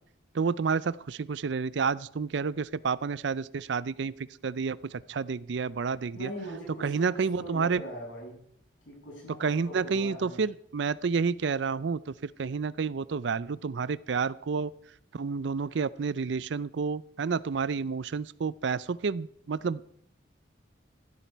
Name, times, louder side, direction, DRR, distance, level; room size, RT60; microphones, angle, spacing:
voice 1, 0.3-4.1 4.4-6.3 6.8-7.8 9.4-14.7 15.1-19.8, right 5 dB, 70° right, 18 dB, 0.5 m, -30 dB
voice 2, 6.1-8.4 8.8-10.4, right 1 dB, 85° left, -2 dB, 7.8 m, -41 dB
14.5 x 12.5 x 4.5 m, 0.66 s
head